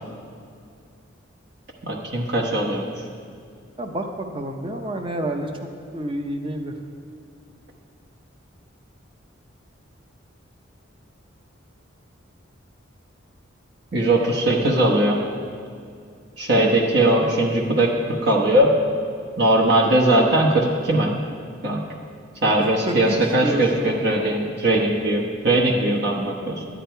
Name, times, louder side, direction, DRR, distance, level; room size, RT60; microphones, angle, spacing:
voice 1, 1.8-2.8 13.9-15.2 16.4-17.9 18.2-18.7 19.4-21.1 21.6-21.8 22.4-26.5, right 1 dB, 55° right, -1 dB, 1.1 m, -19 dB
voice 2, 3.8-5.5 5.9-6.7 22.9-24.4, right 1 dB, 25° right, 4 dB, 0.7 m, -29 dB
10.5 x 10.0 x 4.5 m, 2.3 s
head